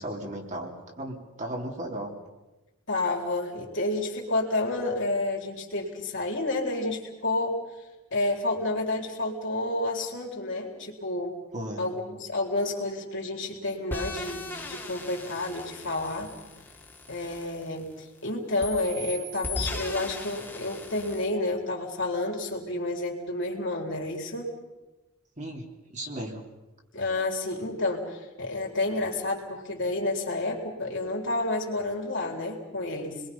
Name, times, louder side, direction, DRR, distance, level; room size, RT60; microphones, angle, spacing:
voice 1, 0.0-2.1 11.5-11.8 25.4-25.6 25.9-26.4, right 1 dB, 35° right, 0 dB, 3.4 m, -35 dB
voice 2, 2.9-7.6 8.1-11.4 11.8-16.3 17.1-24.5 26.9-33.2, left 2 dB, 55° left, 0 dB, 4.1 m, -30 dB
sound 1, 13.9-18.2 18.6-21.3, left 2 dB, 10° left, 2.8 m, -38 dB
30.0 x 22.0 x 5.6 m, 1.1 s
head